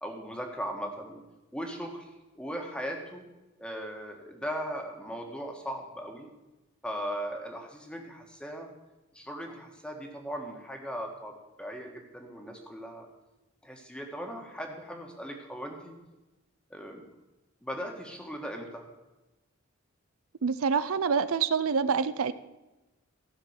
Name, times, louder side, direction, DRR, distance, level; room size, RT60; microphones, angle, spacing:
voice 1, 0.0-1.2 1.5-2.1 2.4-3.2 3.6-6.3 6.8-8.7 9.1-13.1 13.6-15.9 16.7-17.0 17.6-18.9, equal, 5° left, 2 dB, 1.7 m, -38 dB
voice 2, 20.4-22.3, right 6 dB, 80° right, 14 dB, 0.5 m, -26 dB
15.0 x 6.0 x 8.0 m, 1.0 s
head